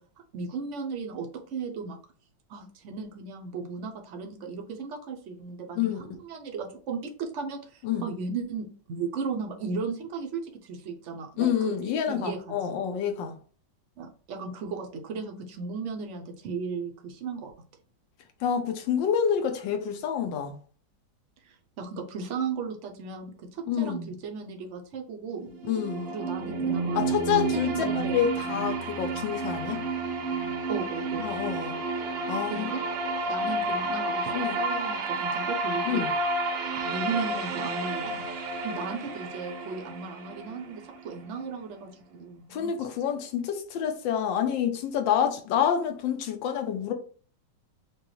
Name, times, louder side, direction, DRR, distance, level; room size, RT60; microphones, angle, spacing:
voice 1, 0.3-2.0 2.5-11.7 12.1-12.7 14.0-17.5 21.4-25.5 26.1-27.0 27.5-28.1 30.7-31.3 32.4-32.8 33.3-36.0 36.8-38.2 38.6-42.8, right 5 dB, 70° right, 0.7 m, -36 dB
voice 2, 11.4-13.3 18.4-20.6 23.7-24.1 25.6-26.1 26.9-29.8 31.2-31.8 32.3-32.7 34.3-34.6 35.9-36.1 42.5-46.9, left 8 dB, 80° left, 1.4 m, -28 dB
sound 1, 25.5-41.4, right 3 dB, 90° right, 1.5 m, -31 dB
6.4 x 2.3 x 3.0 m
omnidirectional pair, 2.0 m